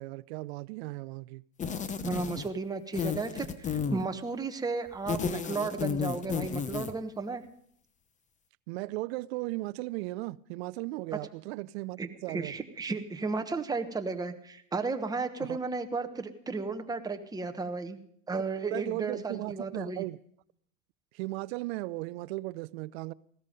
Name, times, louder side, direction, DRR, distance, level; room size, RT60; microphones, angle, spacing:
voice 1, 0.0-1.4 8.7-12.5 15.4-15.6 18.7-20.2 21.1-23.1, right 20 dB, 55° right, 0.5 m, -36 dB
sound 1, 1.6-2.6 2.9-4.1 4.9-7.0, left 6 dB, 20° left, 0.9 m, -32 dB
voice 2, 2.0-7.4 12.0-18.0 18.3-20.0, right 4 dB, 10° right, 1.1 m, -34 dB
16.0 x 13.5 x 5.2 m
hypercardioid pair, 110°, 39 cm